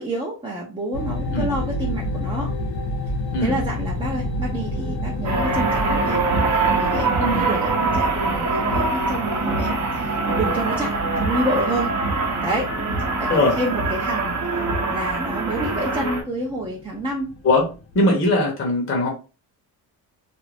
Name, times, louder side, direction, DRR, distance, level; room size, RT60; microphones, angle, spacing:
voice 1, 0.0-2.5 3.4-6.2 6.7-11.9 12.4-12.7 13.2-14.4 14.9-17.3, right 1 dB, 15° right, -3 dB, 0.6 m, -28 dB
sound 1, 0.9-18.0, left 1 dB, 80° left, 0.8 m, -31 dB
sound 2, 5.2-16.2, right 3 dB, 45° right, 0.8 m, -23 dB
voice 2, 17.9-19.1, left 2 dB, 35° left, -1 dB, 0.8 m, -20 dB
2.5 x 2.1 x 3.2 m, 0.32 s
cardioid pair, 120°, 38 cm